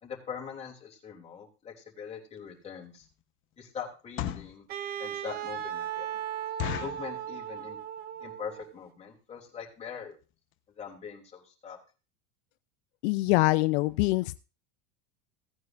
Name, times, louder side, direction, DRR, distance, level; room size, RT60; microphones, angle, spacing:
voice 1, 0.0-3.0 3.6-4.7 5.0-6.1 6.8-7.8 8.2-10.1 10.7-11.8, left 7 dB, 20° left, -2 dB, 3.1 m, -42 dB
sound 1, 2.4-2.5 3.0-3.2 3.9-4.6 5.1-5.2 5.6-5.7 6.0-6.1 6.6-7.1 7.7-8.0 8.2-8.3 8.6-8.8 9.4-9.5 9.7-9.9 10.2-10.3 10.5-10.6, left 11 dB, 35° left, 1.0 m, -35 dB
Wind instrument woodwind instrument, 4.7-8.8, right 10 dB, 30° right, 0.6 m, -37 dB
voice 2, 13.0-14.4, left 20 dB, 75° left, 12 dB, 0.6 m, -24 dB
17.0 x 9.4 x 2.6 m, 0.33 s
supercardioid pair, 160°, 34 cm